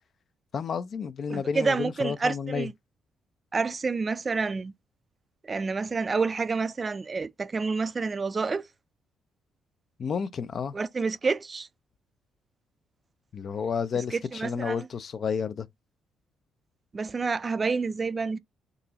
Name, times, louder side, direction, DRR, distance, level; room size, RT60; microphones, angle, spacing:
voice 1, 0.5-2.7 10.0-10.8 13.3-15.7, left 6 dB, 50° left, 0.4 m, -31 dB
voice 2, 1.3-2.7 3.5-4.7 5.4-8.7 10.7-11.7 14.1-14.8 16.9-18.4, right 4 dB, 30° right, 0.3 m, -28 dB
3.8 x 2.8 x 2.8 m
cardioid pair, 90°, 0 cm